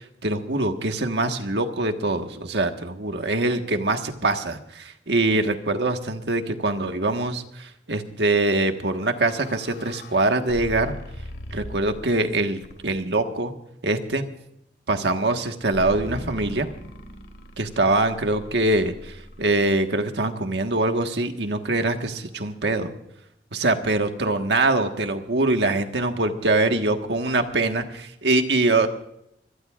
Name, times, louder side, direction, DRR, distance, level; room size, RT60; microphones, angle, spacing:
voice 1, 0.2-10.9 11.5-13.5 13.8-14.2 14.9-16.7 17.6-22.9 23.5-28.9, right 2 dB, 85° right, 6 dB, 1.5 m, -23 dB
sound 1, 8.8-12.1 12.6-13.1 15.7-19.8, left 1 dB, 80° left, 2.1 m, -40 dB
25.0 x 18.0 x 2.5 m, 0.79 s
head